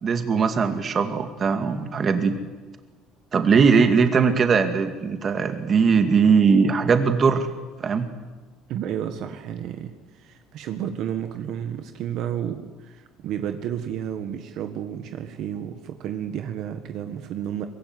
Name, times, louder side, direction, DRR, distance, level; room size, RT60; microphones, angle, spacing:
voice 1, 0.0-2.3 3.3-7.5 7.8-8.1, right 5 dB, 30° right, 7 dB, 2.3 m, -20 dB
voice 2, 8.7-17.7, right 9 dB, 55° right, 7 dB, 1.7 m, -31 dB
23.5 x 22.0 x 9.7 m, 1.3 s
cardioid pair, 160°, 0 cm